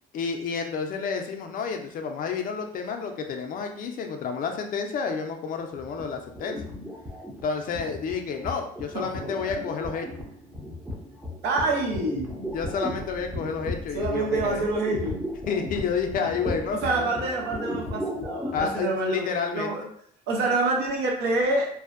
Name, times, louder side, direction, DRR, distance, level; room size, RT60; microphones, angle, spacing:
voice 1, 0.1-6.6 7.4-10.3 12.5-14.7 15.5-17.1 18.5-19.7, left 5 dB, 55° left, 4 dB, 0.4 m, -30 dB
sound 1, 5.7-18.8, left 1 dB, 10° right, 0.5 m, -36 dB
voice 2, 8.9-9.6 11.4-12.4 13.9-15.3 16.7-19.9 20.3-21.7, right 2 dB, 75° right, 0 dB, 0.7 m, -27 dB
2.6 x 2.1 x 2.4 m, 0.64 s
cardioid pair, 110°, 17 cm